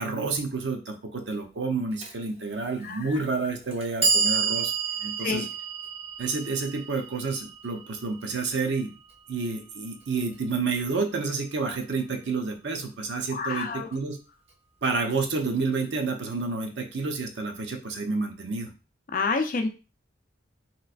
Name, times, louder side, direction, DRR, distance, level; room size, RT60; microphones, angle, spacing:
voice 1, 0.0-4.7 5.0-5.5 6.2-8.9 9.3-14.2 14.8-18.7, right 4 dB, 70° right, 3 dB, 0.6 m, -29 dB
Clock, 2.0-2.1 3.1-3.2 3.7-9.8, right 5 dB, 35° right, 0.6 m, -30 dB
voice 2, 13.3-13.9 19.1-19.7, left 4 dB, 45° left, 7 dB, 0.4 m, -28 dB
3.1 x 3.0 x 2.4 m, 0.33 s
head